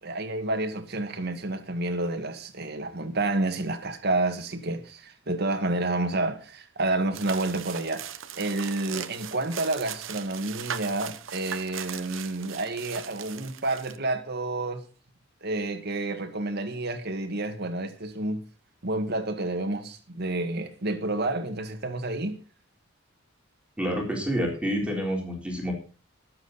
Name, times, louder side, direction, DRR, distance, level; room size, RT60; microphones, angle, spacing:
voice 1, 0.0-14.8 15.4-18.4 18.8-22.4, right 2 dB, 55° right, 1.8 m, -29 dB
sound 1, 7.1-14.0, right 9 dB, 75° right, 1.0 m, -39 dB
voice 2, 23.8-25.7, equal, 5° right, 3.8 m, -28 dB
21.0 x 7.8 x 4.1 m
head